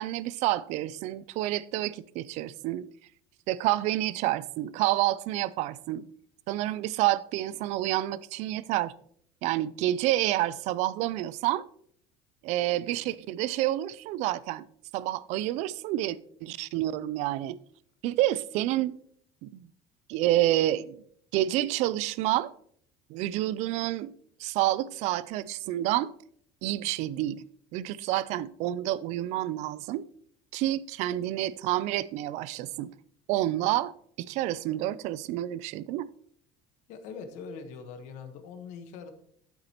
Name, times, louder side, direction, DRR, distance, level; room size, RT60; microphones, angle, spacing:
voice 1, 0.0-2.9 3.5-6.1 6.5-8.9 9.4-11.6 12.4-14.6 14.9-17.6 18.0-18.9 19.4-19.7 20.1-21.0 21.3-22.5 23.1-24.1 24.4-26.1 26.6-27.4 27.7-30.0 30.5-32.9 33.3-36.1, right 14 dB, 60° right, 0.4 m, -29 dB
voice 2, 36.9-39.1, left 5 dB, 65° left, 1.3 m, -42 dB
9.9 x 8.0 x 2.9 m
cardioid pair, 150°, 13 cm